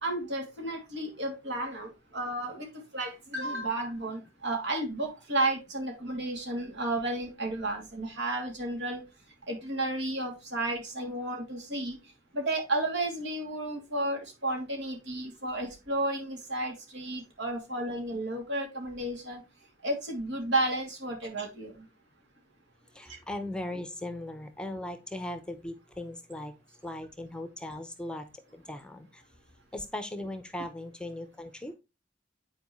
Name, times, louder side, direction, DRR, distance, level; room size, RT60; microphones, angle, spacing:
voice 1, 0.0-9.0 9.5-12.0 12.3-19.4 19.8-21.7 23.1-23.2, right 2 dB, 75° right, 2 dB, 2.7 m, -32 dB
voice 2, 22.9-26.5 26.8-28.3 28.5-29.2 29.7-31.7, left 1 dB, 5° left, 8 dB, 0.7 m, -38 dB
9.7 x 4.6 x 3.1 m, 0.25 s
head